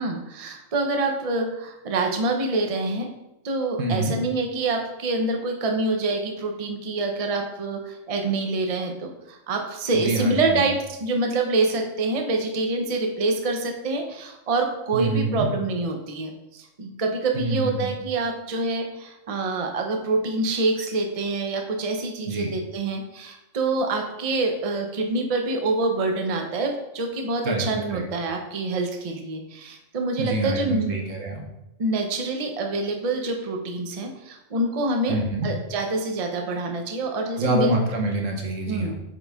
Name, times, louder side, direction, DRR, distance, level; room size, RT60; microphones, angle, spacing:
voice 1, 0.0-3.1 3.4-30.9 31.8-37.7 38.7-38.9, right 2 dB, 35° right, 3 dB, 0.7 m, -26 dB
voice 2, 3.8-4.2 9.9-10.6 14.9-15.5 17.3-17.9 22.3-22.5 27.4-28.0 30.2-31.3 35.1-35.5 37.4-38.9, right 2 dB, 85° right, 1 dB, 1.5 m, -26 dB
7.7 x 3.8 x 3.5 m, 0.91 s
omnidirectional pair, 1.3 m